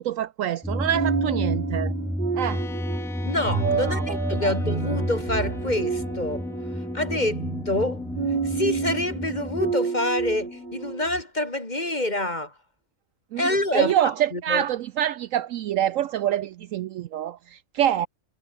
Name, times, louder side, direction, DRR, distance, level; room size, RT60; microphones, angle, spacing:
voice 1, 0.0-1.9 2.4-2.6 3.8-4.0 4.4-4.5 13.3-13.4 13.7-18.1, right 11 dB, 70° right, 0.9 m, -26 dB
sound 1, 0.6-9.7, equal, ahead, 2.1 m, -31 dB
sound 2, 0.9-11.2, right 6 dB, 35° right, 1.1 m, -30 dB
sound 3, 2.4-10.9, left 5 dB, 70° left, 2.5 m, -39 dB
voice 2, 3.2-12.6 13.4-14.7, left 1 dB, 30° left, 4.0 m, -27 dB
omnidirectional pair, 1.5 m